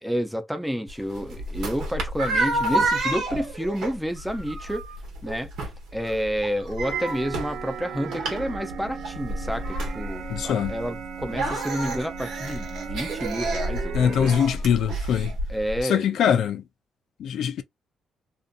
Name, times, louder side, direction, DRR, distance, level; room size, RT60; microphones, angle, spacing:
voice 1, 0.0-4.8 5.2-5.5 5.9-14.4 15.5-16.4, equal, ahead, 0.5 m, -30 dB
sound 1, 0.9-15.8, right 2 dB, 80° right, 1.0 m, -30 dB
sound 2, 6.8-14.4, right 7 dB, 65° right, 0.4 m, -37 dB
voice 2, 10.3-10.7 13.9-15.3 15.8-16.6 17.2-17.6, left 8 dB, 75° left, 0.3 m, -23 dB
2.6 x 2.5 x 2.2 m
cardioid pair, 90°, 0 cm